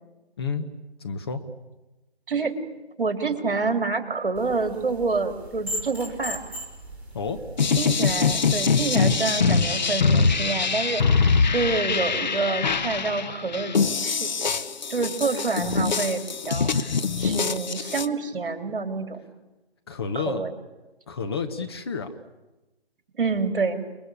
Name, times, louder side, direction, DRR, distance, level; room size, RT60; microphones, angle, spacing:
voice 1, 1.0-1.4 7.1-7.4 19.9-20.5 21.1-22.2, left 5 dB, 25° left, 5 dB, 1.1 m, -30 dB
voice 2, 2.3-2.6 3.0-6.4 7.8-14.4 14.9-19.3 20.2-20.5 23.2-23.8, right 4 dB, 55° right, 6 dB, 3.6 m, -27 dB
sound 1, 4.3-9.2, equal, 5° right, 4.3 m, -38 dB
sound 2, 7.6-18.1, left 5 dB, 45° left, 1.1 m, -23 dB
29.5 x 21.5 x 8.7 m, 1.1 s
figure-of-eight pair, 155°, 32 cm